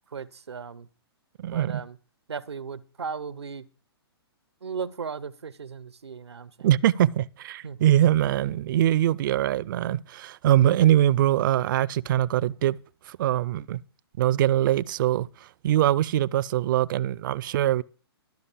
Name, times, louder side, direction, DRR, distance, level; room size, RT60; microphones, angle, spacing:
voice 1, 0.1-0.9 1.4-2.0 2.3-3.7 4.6-6.7 7.6-7.9, right 6 dB, 90° right, 0.8 m, -36 dB
voice 2, 1.4-1.8 6.6-12.8 13.1-13.8 14.2-17.8, right 12 dB, 50° right, 0.5 m, -23 dB
12.0 x 5.3 x 8.2 m
hypercardioid pair, 130°, 14 cm